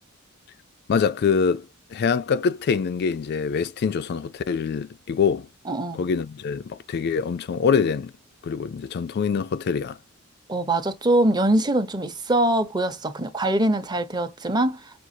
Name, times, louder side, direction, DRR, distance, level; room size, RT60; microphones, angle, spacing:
voice 1, 0.9-5.5 5.9-8.1 8.4-10.0, left 6 dB, 50° left, 0.3 m, -24 dB
voice 2, 5.7-6.0 10.5-14.8, right 1 dB, 20° right, 0.7 m, -23 dB
6.1 x 2.4 x 2.7 m
head